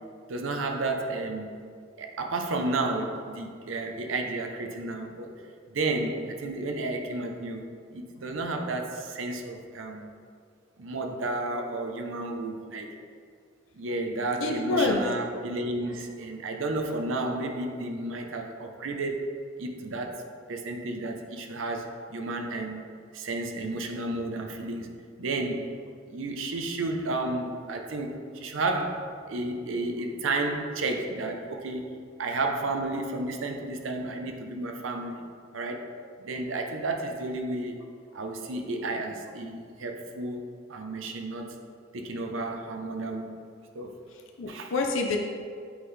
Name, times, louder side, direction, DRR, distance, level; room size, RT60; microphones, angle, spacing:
voice 1, 0.3-1.5 2.0-5.3 5.7-10.1 10.8-12.9 13.7-22.8 23.1-25.8 26.1-31.9 32.2-35.2 35.5-35.9 36.2-37.8 38.1-41.6 41.9-43.3 43.7-43.9 44.5-44.7, right 2 dB, 85° right, 4 dB, 0.6 m, -32 dB
voice 2, 14.4-15.0 44.4-45.2, left 3 dB, 85° left, 2 dB, 0.5 m, -26 dB
8.0 x 3.9 x 3.2 m, 2.2 s
head